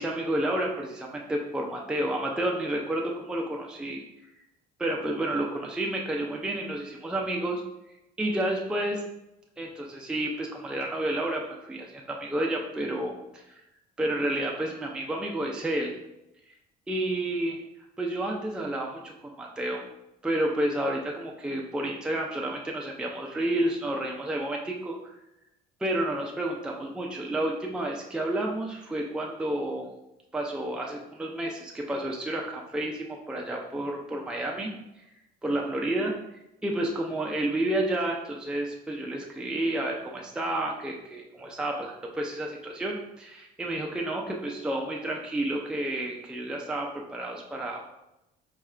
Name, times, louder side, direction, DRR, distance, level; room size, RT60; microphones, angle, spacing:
voice 1, 0.0-4.0 4.8-7.6 8.2-9.0 9.6-13.4 14.0-15.9 16.9-17.6 18.0-19.8 20.2-25.1 25.8-29.9 30.3-34.7 35.4-36.1 36.6-47.9, right 1 dB, 5° right, -1 dB, 0.4 m, -30 dB
4.6 x 2.3 x 3.2 m, 0.88 s
cardioid pair, 110°, 17 cm